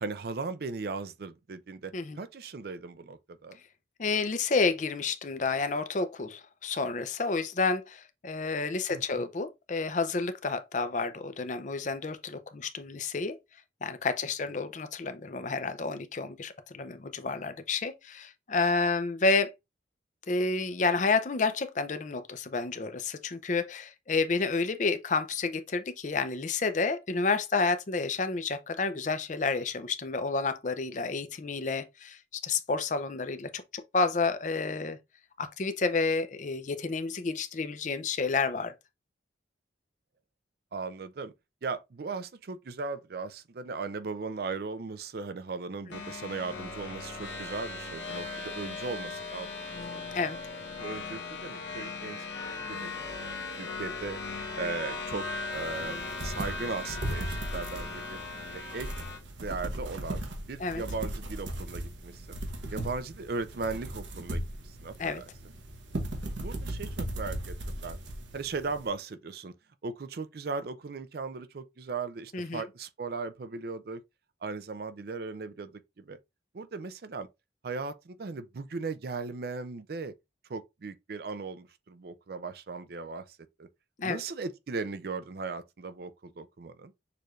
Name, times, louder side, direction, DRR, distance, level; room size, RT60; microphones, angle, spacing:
voice 1, 0.0-3.6 8.9-9.0 40.7-41.3 41.6-50.0 50.8-52.2 52.5-54.2 54.5-55.3 55.5-58.2 58.5-58.9 59.4-60.2 60.5-62.4 62.7-64.4 64.7-65.3 66.4-68.0 68.3-69.5 69.8-74.0 74.4-76.2 76.5-77.3 77.6-80.1 80.5-83.2 83.6-83.7 84.0-86.9, right 4 dB, 55° right, 0.4 m, -37 dB
voice 2, 4.0-13.4 13.8-19.5 20.3-32.2 32.4-35.0 35.4-38.7 50.1-50.4 60.6-60.8 65.0-65.2 72.3-72.7 84.0-84.2, left 4 dB, 40° left, 0.5 m, -30 dB
sound 1, 45.9-59.2, left 3 dB, 70° left, 1.1 m, -38 dB
sound 2, 55.5-68.9, right 1 dB, 80° right, 1.0 m, -37 dB
6.7 x 3.2 x 2.4 m
head